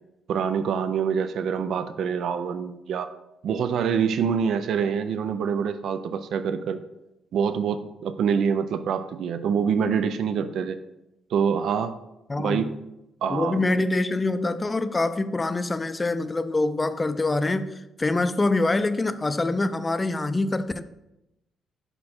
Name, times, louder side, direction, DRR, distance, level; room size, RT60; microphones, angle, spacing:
voice 1, 0.3-3.1 3.4-6.8 7.3-10.8 11.3-11.9 12.4-12.7 13.2-13.7, right 7 dB, 70° right, 0.3 m, -25 dB
voice 2, 12.3-12.7 13.3-20.8, left 2 dB, 20° left, 0.4 m, -25 dB
5.2 x 4.2 x 4.3 m
cardioid pair, 90°, 0 cm